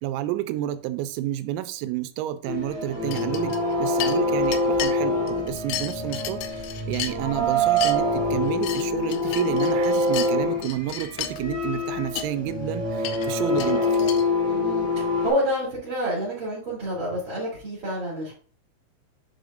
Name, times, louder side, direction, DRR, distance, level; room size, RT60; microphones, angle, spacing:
voice 1, 0.0-14.1, right 13 dB, 85° right, 3.3 m, -30 dB
sound 1, 2.5-15.3, left 1 dB, 5° right, 1.6 m, -25 dB
sound 2, 3.1-3.7 4.0-4.9 5.3-7.4 7.7-7.9 8.4-10.3 10.6-11.4 11.9-12.0 12.2-12.3 13.0-14.2, left 11 dB, 85° left, 3.1 m, -33 dB
voice 2, 14.5-18.3, equal, 30° right, 2.6 m, -28 dB
10.0 x 5.0 x 2.6 m
omnidirectional pair, 5.9 m